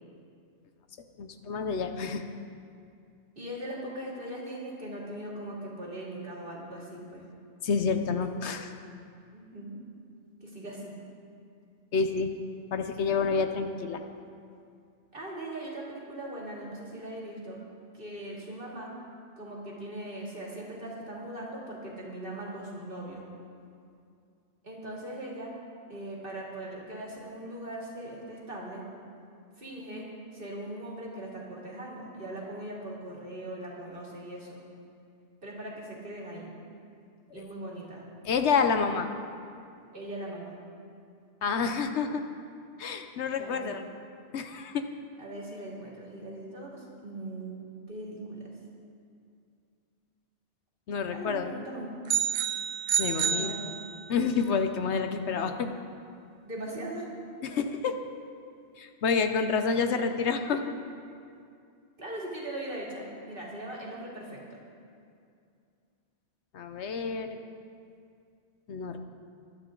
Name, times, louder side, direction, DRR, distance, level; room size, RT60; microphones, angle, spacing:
voice 1, 1.2-2.2 7.6-8.7 11.9-12.3 12.7-14.0 37.3-37.4 38.2-39.1 41.4-42.2 42.8-43.8 44.3-44.8 50.9-51.5 53.0-53.6 54.1-55.8 57.4-58.0 58.8-60.6 66.5-67.3 68.7-69.0, left 5 dB, 70° left, 7 dB, 1.0 m, -28 dB
voice 2, 3.4-7.2 9.3-9.8 10.4-10.9 13.2-13.4 15.1-17.6 17.9-18.9 19.4-23.3 24.6-25.5 25.9-28.9 29.6-30.1 30.3-34.6 35.4-36.5 37.3-38.0 39.9-40.5 43.4-43.8 45.2-48.5 51.1-51.9 53.2-53.7 56.4-57.1 57.5-57.6 62.0-64.6, right 1 dB, 50° right, -4 dB, 2.8 m, -40 dB
sound 1, 52.1-54.3, right 8 dB, 75° right, 0.9 m, -29 dB
20.0 x 11.5 x 3.8 m, 2.4 s
omnidirectional pair, 1.2 m